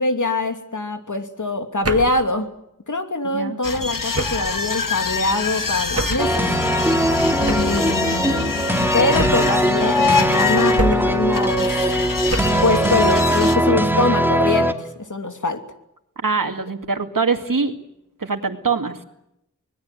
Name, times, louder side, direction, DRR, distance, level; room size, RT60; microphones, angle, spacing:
voice 1, 0.0-2.5 2.9-6.5 7.4-8.5 8.9-11.8 12.6-15.6, left 2 dB, 70° left, 6 dB, 2.8 m, -23 dB
sound 1, 1.8-2.3 4.1-4.6 6.0-6.3 7.5-7.8 9.2-9.6 10.8-11.3 12.3-12.7, right 2 dB, 45° right, 1.8 m, -25 dB
sound 2, 3.6-13.6, left 5 dB, 85° left, 1.8 m, -25 dB
sound 3, 6.2-14.7, right 1 dB, 5° right, 2.6 m, -20 dB
voice 2, 16.2-17.7 18.2-19.0, right 4 dB, 90° right, 6 dB, 2.2 m, -23 dB
25.5 x 20.5 x 7.8 m, 0.81 s
wide cardioid pair, 50°, 32 cm